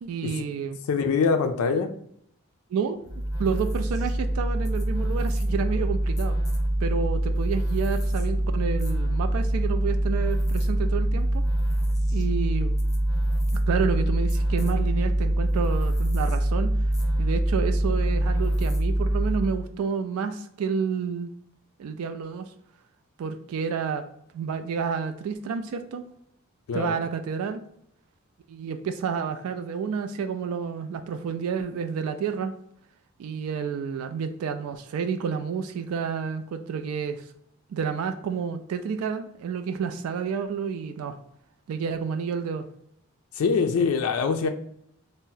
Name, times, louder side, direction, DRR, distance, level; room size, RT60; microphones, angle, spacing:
voice 1, 0.0-0.8 2.7-6.4 6.8-11.4 12.1-12.8 13.7-16.7 17.2-21.3 21.8-22.5 23.2-24.0 24.3-26.1 26.7-27.6 28.5-32.5 33.2-37.3 37.7-41.2 41.7-42.7, right 6 dB, 90° right, 11 dB, 0.3 m, -30 dB
voice 2, 0.9-1.9 26.7-27.0 43.3-44.5, left 5 dB, 85° left, 6 dB, 0.3 m, -24 dB
sound 1, 3.1-19.6, right 1 dB, 15° left, 0.4 m, -24 dB
2.6 x 2.0 x 3.7 m, 0.72 s
head